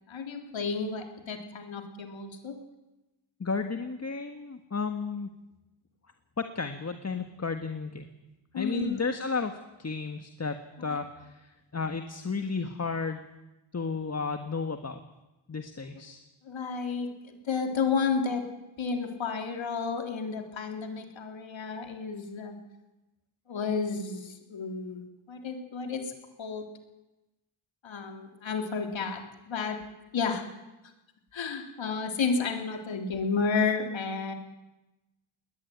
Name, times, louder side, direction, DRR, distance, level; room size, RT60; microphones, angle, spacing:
voice 1, 0.1-2.6 8.5-9.1 10.9-11.0 16.4-18.4 18.8-22.6 23.5-26.1 26.4-26.7 27.8-29.8 30.1-30.4 31.3-34.3, left 5 dB, 70° left, 4 dB, 3.7 m, -31 dB
voice 2, 3.4-5.3 6.4-8.1 8.6-13.2 13.7-15.0 15.5-16.2, left 4 dB, 30° left, 7 dB, 1.7 m, -33 dB
20.5 x 20.0 x 9.5 m, 1.0 s
cardioid pair, 90°, 47 cm